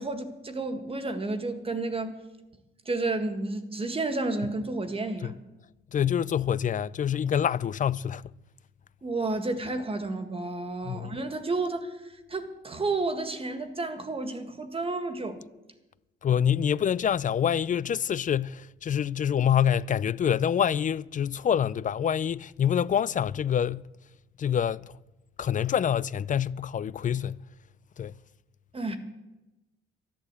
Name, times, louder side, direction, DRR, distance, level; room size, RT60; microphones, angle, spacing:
voice 1, 0.0-2.2 2.9-5.4 9.0-11.9 12.3-15.4 28.7-29.0, right 3 dB, 30° right, 1.8 m, -31 dB
voice 2, 5.9-8.3 10.8-11.2 16.2-23.9 24.4-24.9 25.4-27.4 28.0-28.1, left 9 dB, 40° left, 0.5 m, -26 dB
12.0 x 11.5 x 8.2 m
cardioid pair, 90°, 20 cm